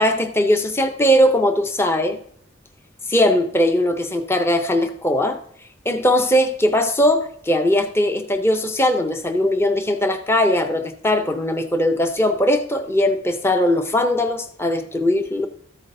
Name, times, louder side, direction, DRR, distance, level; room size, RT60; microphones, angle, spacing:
voice 1, 0.0-2.2 3.1-5.4 5.9-15.5, left 1 dB, 15° left, 7 dB, 0.5 m, -19 dB
13.5 x 8.1 x 2.6 m, 0.64 s
head